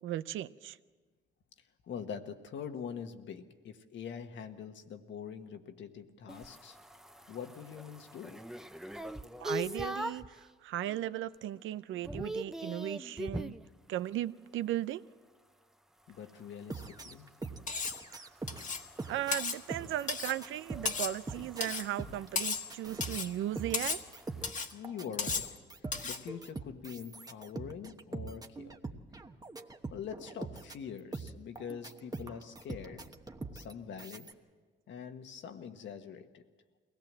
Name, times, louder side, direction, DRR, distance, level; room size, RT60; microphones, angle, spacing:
voice 1, 0.0-0.8 9.4-13.6 13.9-15.0 18.1-18.3 19.0-24.0, right 13 dB, 80° right, 15 dB, 0.6 m, -37 dB
voice 2, 1.9-6.8 7.3-8.4 16.1-17.3 24.7-25.5 26.0-28.8 29.9-33.0 33.5-34.3 34.9-36.4, left 7 dB, 70° left, 7 dB, 1.4 m, -44 dB
sound 1, 6.3-10.4 10.9-11.3 11.5-13.6 16.1-24.5, equal, ahead, 0.6 m, -44 dB
sound 2, 16.7-18.7 19.0-34.3, right 3 dB, 20° right, 1.2 m, -43 dB
Cutlery silverware, 17.7-18.0 18.5-18.9 19.3-19.6 20.1-20.4 20.9-21.2 21.6-21.9 22.4-22.7 23.0-23.3 23.7-24.0 24.4-24.7 25.2-25.5 25.9-26.2, left 5 dB, 40° left, 1.4 m, -35 dB
22.5 x 17.5 x 7.5 m, 1.5 s
cardioid pair, 90°, 20 cm